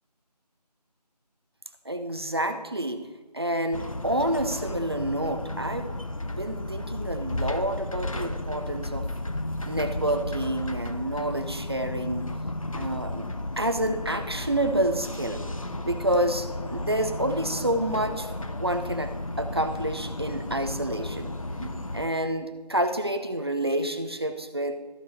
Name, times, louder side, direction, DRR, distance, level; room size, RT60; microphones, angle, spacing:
voice 1, 1.8-3.1 3.3-6.0 6.2-9.1 9.7-12.3 12.7-13.3 13.6-15.4 15.8-18.3 18.6-21.3 21.6-24.8, right 1 dB, 35° right, 7 dB, 0.8 m, -28 dB
sound 1, 3.7-22.1, left 2 dB, 50° left, 0.7 m, -34 dB
13.5 x 5.3 x 4.6 m, 1.2 s
figure-of-eight pair, 175°, 21 cm